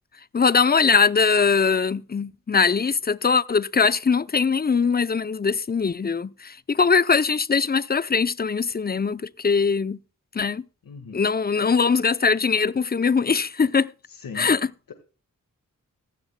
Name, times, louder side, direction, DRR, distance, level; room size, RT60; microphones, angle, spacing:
voice 1, 0.3-10.0 10.3-10.6 11.1-13.9 14.4-14.6, left 5 dB, 30° left, 0.5 m, -21 dB
voice 2, 10.8-11.3 11.5-11.7 14.1-14.5 14.9-15.0, left 5 dB, 80° left, 1.7 m, -39 dB
16.0 x 15.0 x 2.2 m
wide cardioid pair, 100°, 33 cm